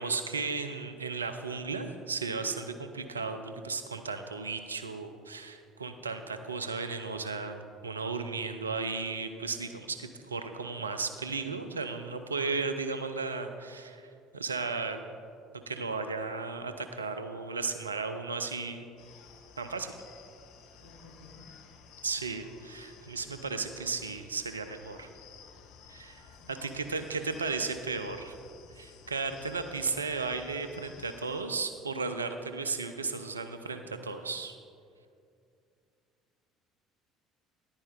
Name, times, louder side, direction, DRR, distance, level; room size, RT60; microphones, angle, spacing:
voice 1, 0.0-14.0 14.3-15.0 15.7-18.8 19.6-19.9 22.0-25.1 25.9-26.2 26.5-28.4 28.8-34.6, right 4 dB, 85° right, 8 dB, 0.5 m, -35 dB
sound 1, 19.0-31.4, left 6 dB, 60° left, 0.7 m, -54 dB
voice 2, 20.8-21.5 26.3-26.8, left 3 dB, 85° left, -6 dB, 2.7 m, -55 dB
10.5 x 9.7 x 3.6 m, 2.4 s
figure-of-eight pair, 55°, 0 cm